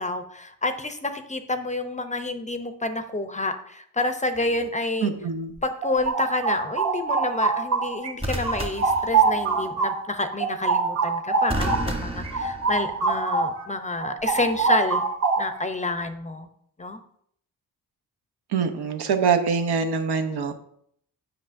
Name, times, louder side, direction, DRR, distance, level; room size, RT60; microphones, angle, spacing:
voice 1, 0.0-5.1 5.6-15.0 15.4-16.5 16.8-17.0, left 2 dB, 20° left, 8 dB, 0.5 m, -28 dB
sound 1, 4.3-4.7 8.2-9.7 11.5-13.2 14.4-14.7, right 1 dB, 15° right, 0.9 m, -32 dB
voice 2, 5.0-5.5 18.5-20.5, right 5 dB, 80° right, 7 dB, 0.8 m, -24 dB
sound 2, 5.6-8.1 8.4-13.6 14.0-15.7, right 4 dB, 40° right, 0.8 m, -25 dB
7.9 x 5.5 x 2.6 m, 0.67 s
cardioid pair, 100°, 39 cm